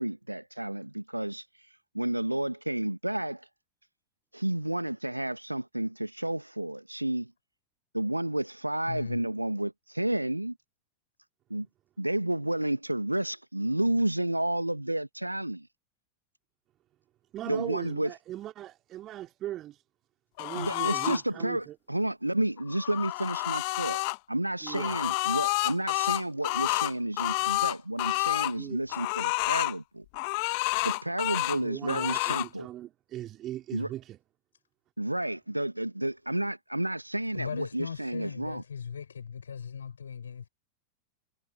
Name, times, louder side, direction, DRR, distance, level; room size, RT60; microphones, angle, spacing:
voice 1, 0.0-1.7 1.9-3.5 4.3-7.3 7.9-10.6 11.5-11.7 12.0-15.7 17.5-18.1 20.5-30.0 30.8-32.7 33.7-33.9 35.0-38.6, right 1 dB, 85° right, 1.4 m, -31 dB
voice 2, 8.8-9.2 37.3-40.5, left 7 dB, 70° left, 6.6 m, -38 dB
voice 3, 17.3-19.8 20.4-21.7 24.6-25.1 28.5-28.8 31.4-34.2, right 13 dB, 30° right, 3.3 m, -39 dB
sound 1, 20.4-21.2 22.6-24.2 24.7-28.5 28.9-29.7 30.1-31.6 31.9-32.5, left 32 dB, 45° left, 1.2 m, -29 dB
figure-of-eight pair, 90°, 0 cm